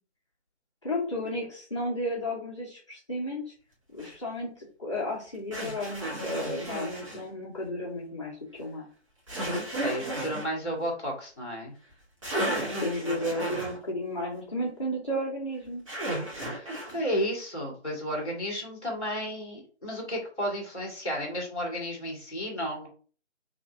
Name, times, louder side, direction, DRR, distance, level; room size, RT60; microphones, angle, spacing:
voice 1, 0.8-3.5 3.9-8.9 12.8-15.8, left 1 dB, 25° left, -6 dB, 1.0 m, -33 dB
sound 1, 4.0-4.1 5.5-7.2 9.3-10.5 11.9-12.0 12.2-13.8 15.9-17.0, right 1 dB, 25° right, 1.2 m, -33 dB
voice 2, 9.8-11.7 16.4-22.9, equal, 5° right, -17 dB, 1.0 m, -33 dB
3.3 x 2.5 x 4.2 m, 0.40 s
figure-of-eight pair, 155°, 36 cm